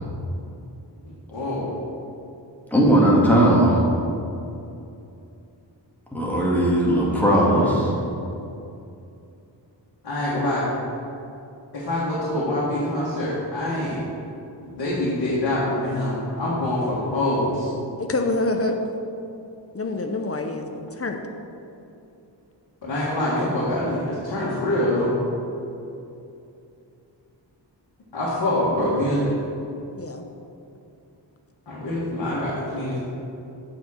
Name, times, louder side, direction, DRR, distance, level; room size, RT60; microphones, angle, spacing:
voice 1, 1.3-1.7 7.1-7.2 7.5-7.7 10.0-10.7 11.7-14.0 14.6-17.7 22.8-25.1 28.1-29.3 31.7-33.0, left 1 dB, 60° left, -8 dB, 1.8 m, -25 dB
voice 2, 2.7-3.9 6.1-7.9, right 1 dB, 5° left, -5 dB, 1.9 m, -18 dB
voice 3, 18.0-18.8 19.7-20.7 21.0-21.2 30.0-30.2, left 2 dB, 30° left, 4 dB, 0.7 m, -26 dB
7.4 x 5.5 x 7.3 m, 2.7 s
wide cardioid pair, 130°, 44 cm